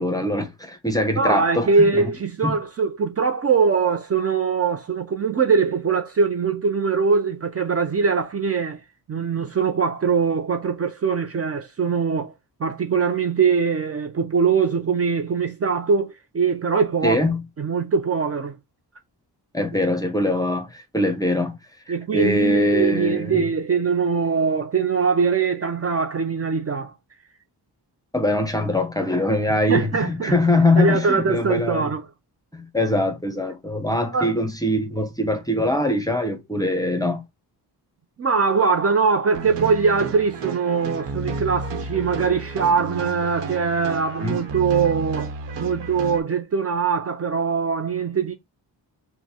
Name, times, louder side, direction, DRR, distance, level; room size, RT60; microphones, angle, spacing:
voice 1, 0.0-2.1 2.4-2.6 17.0-17.4 19.5-21.6 22.1-23.5 28.1-31.9 32.5-37.2 44.2-44.4, left 1 dB, 10° left, 0.6 m, -22 dB
voice 2, 1.2-8.8 9.1-12.3 12.6-17.2 17.6-18.6 21.9-26.9 29.5-30.3 30.8-32.1 34.1-34.3 38.2-45.3 45.6-48.3, right 5 dB, 35° right, 0.5 m, -22 dB
sound 1, 39.3-46.2, right 4 dB, 80° right, 1.0 m, -31 dB
5.6 x 2.1 x 2.8 m
wide cardioid pair, 125°, 41 cm